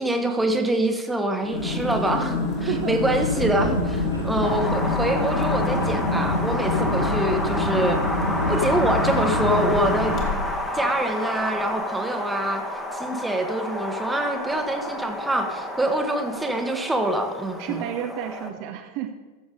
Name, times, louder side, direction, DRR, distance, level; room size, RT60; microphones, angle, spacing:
voice 1, 0.0-8.0 8.5-10.1 10.7-12.6 12.9-17.8, right 1 dB, 10° right, 5 dB, 1.2 m, -25 dB
sound 1, 1.4-10.6, left 3 dB, 35° left, 2.5 m, -27 dB
voice 2, 2.7-3.3 10.1-10.5 17.6-19.1, right 9 dB, 45° right, 5 dB, 0.9 m, -31 dB
sound 2, 3.0-10.2, equal, 90° right, 1.9 m, -29 dB
Wind, 4.4-18.5, left 1 dB, 10° left, 1.5 m, -30 dB
15.0 x 7.1 x 4.8 m, 1.3 s
figure-of-eight pair, 90°, 0 cm